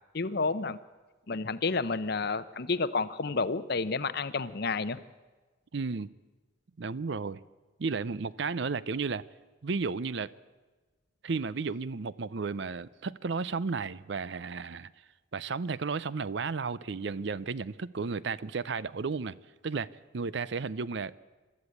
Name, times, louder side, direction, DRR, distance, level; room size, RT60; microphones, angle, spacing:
voice 1, 0.1-0.8 1.3-5.0, left 4 dB, 50° left, 0.7 m, -30 dB
voice 2, 5.7-6.1 6.8-7.4 7.8-9.2 9.6-10.3 11.2-14.9 15.3-19.4 19.6-19.9 20.1-21.1, right 4 dB, 60° right, 0.5 m, -33 dB
24.5 x 13.0 x 8.4 m
head